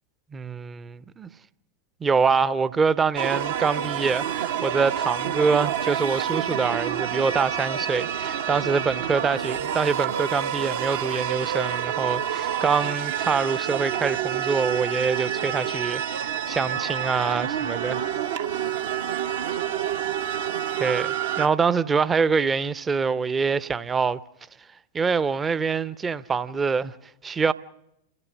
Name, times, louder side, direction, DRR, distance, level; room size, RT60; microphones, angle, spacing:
voice 1, 0.3-1.3 2.0-18.1 20.8-24.2 24.9-26.9 27.2-27.5, right 5 dB, 15° right, 0.7 m, -25 dB
sound 1, 3.2-21.5, right 9 dB, 55° right, 0.9 m, -28 dB
30.0 x 15.0 x 6.4 m
figure-of-eight pair, 90°, 0 cm